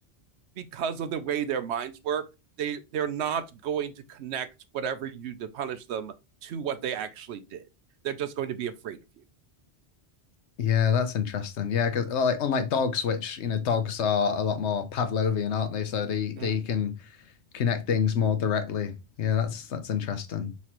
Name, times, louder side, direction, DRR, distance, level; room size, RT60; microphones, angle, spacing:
voice 1, 0.6-2.3 2.6-4.5 4.7-6.1 6.4-7.6 8.0-9.0 16.4-16.6, right 8 dB, 70° right, 0.8 m, -32 dB
voice 2, 10.6-17.1 17.5-20.5, left 7 dB, 75° left, 1.0 m, -27 dB
5.7 x 3.0 x 2.9 m
omnidirectional pair, 1.2 m